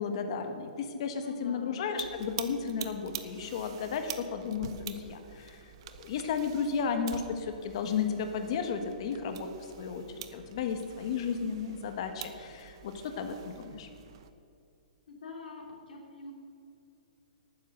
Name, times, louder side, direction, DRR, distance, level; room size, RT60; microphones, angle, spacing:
voice 1, 0.0-5.6 6.0-9.5 9.8-10.0 10.3-13.9, left 6 dB, 35° left, 7 dB, 1.3 m, -33 dB
voice 2, 1.1-1.8 15.1-16.3, left 2 dB, 85° left, 0 dB, 2.9 m, -44 dB
sound 1, 1.9-14.3, right 10 dB, 35° right, 0.6 m, -46 dB
12.0 x 9.4 x 6.6 m, 2.5 s
hypercardioid pair, 175°, 5 cm